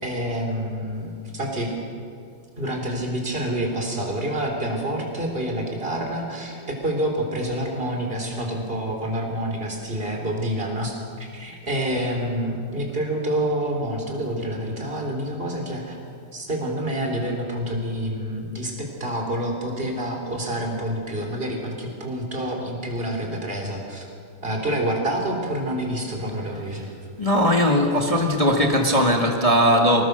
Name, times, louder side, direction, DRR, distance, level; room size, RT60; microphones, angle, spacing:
voice 1, 0.0-1.7 2.6-16.0 16.3-24.0 24.4-26.9, right 1 dB, 25° right, 1 dB, 4.0 m, -27 dB
voice 2, 27.2-30.0, equal, 15° left, 1 dB, 1.8 m, -19 dB
27.0 x 19.5 x 6.8 m, 2.3 s
omnidirectional pair, 2.4 m